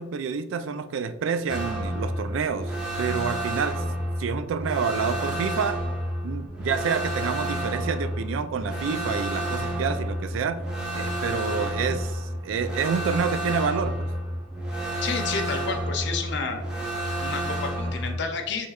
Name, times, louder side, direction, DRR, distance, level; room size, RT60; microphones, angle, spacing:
voice 1, 0.0-3.8 4.2-5.8 6.2-10.6 10.9-14.1, right 6 dB, 70° right, 11 dB, 0.3 m, -28 dB
sound 1, 1.5-18.1, right 1 dB, 5° right, 0.9 m, -30 dB
voice 2, 15.0-16.6 17.2-18.7, left 5 dB, 60° left, 4 dB, 0.6 m, -30 dB
6.2 x 3.2 x 2.4 m, 1.0 s
head